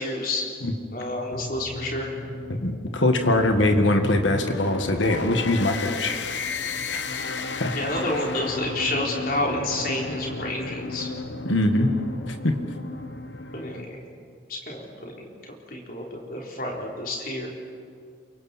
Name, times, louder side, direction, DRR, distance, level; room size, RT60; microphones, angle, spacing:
voice 1, 0.0-0.5 0.9-2.1 7.7-11.1 13.5-14.0 14.5-15.2 15.7-17.5, left 1 dB, 50° left, -2 dB, 3.9 m, -29 dB
sound 1, 1.3-13.9, left 3 dB, 70° left, 1.0 m, -33 dB
voice 2, 2.5-6.2 6.9-7.2 7.6-7.7 11.5-11.9 12.3-12.5, left 1 dB, 90° left, 5 dB, 1.9 m, -22 dB
28.0 x 24.0 x 4.5 m, 2.2 s
head